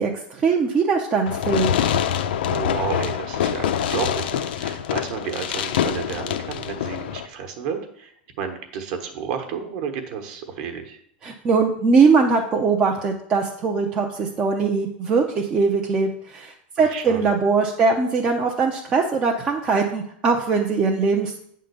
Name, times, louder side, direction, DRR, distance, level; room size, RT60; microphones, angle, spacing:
voice 1, 0.0-1.7 11.2-21.4, right 4 dB, 15° right, 1 dB, 0.5 m, -21 dB
Fireworks, 1.3-7.3, left 9 dB, 65° left, 0.6 m, -25 dB
voice 2, 2.4-11.0 16.8-17.2, right 7 dB, 40° right, 5 dB, 1.1 m, -31 dB
8.7 x 3.7 x 6.8 m, 0.69 s
supercardioid pair, 180°, 6 cm